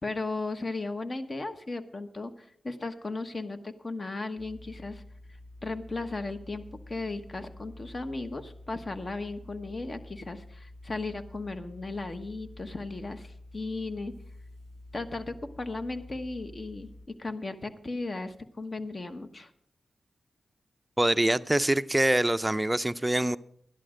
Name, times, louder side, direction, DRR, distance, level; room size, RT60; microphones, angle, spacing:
voice 1, 0.0-5.0 5.6-14.1 14.9-19.5, left 3 dB, 45° left, 8 dB, 1.2 m, -36 dB
sound 1, 4.4-17.1, left 2 dB, 75° left, 4.0 m, -48 dB
voice 2, 21.0-23.4, right 1 dB, 15° right, 13 dB, 0.4 m, -25 dB
13.0 x 11.0 x 5.1 m, 0.69 s
cardioid pair, 60°, 0 cm